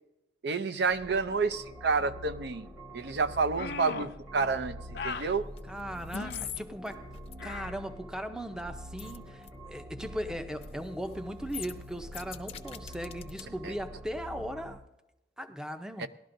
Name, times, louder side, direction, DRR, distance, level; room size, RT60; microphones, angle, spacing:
voice 1, 0.4-2.7 2.9-4.8 5.0-5.5 13.6-13.7 16.0-16.1, right 4 dB, 75° right, 0.6 m, -29 dB
sound 1, 0.9-14.8, equal, 20° right, 0.9 m, -46 dB
sound 2, 3.6-4.2 4.9-5.3 6.1-6.5 7.4-7.8, left 4 dB, 80° left, 0.6 m, -38 dB
sound 3, 5.6-5.8 6.1-6.6 6.9-7.3 9.0-9.2 9.4-9.5 10.5-10.7 11.0-11.2 11.5-13.4 13.8-13.9, left 9 dB, 35° left, 0.6 m, -42 dB
voice 2, 5.7-7.1 7.4-14.8 15.4-16.1, equal, 5° right, 0.5 m, -38 dB
18.5 x 12.0 x 2.6 m
head